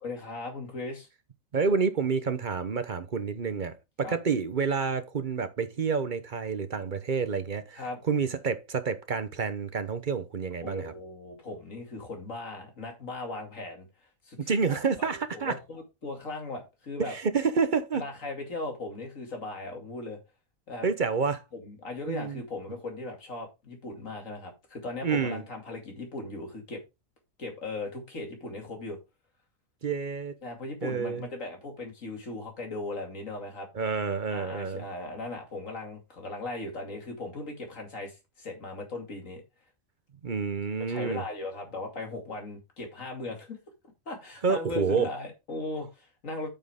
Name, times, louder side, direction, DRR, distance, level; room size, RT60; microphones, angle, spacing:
voice 1, 0.0-1.1 4.0-4.2 7.7-8.0 10.6-13.9 14.2-17.1 17.9-20.2 20.7-20.9 21.5-26.8 27.4-29.0 30.4-33.7 34.3-39.4 40.9-43.6 44.1-46.5, left 2 dB, 70° left, 2.9 m, -38 dB
voice 2, 1.5-10.9 14.4-15.5 17.0-18.0 20.8-21.4 22.1-22.4 25.0-25.4 29.8-30.4 30.8-31.3 33.7-34.8 40.2-41.2 44.4-45.1, right 5 dB, 40° right, 0.9 m, -29 dB
8.9 x 6.3 x 3.6 m
omnidirectional pair, 1.4 m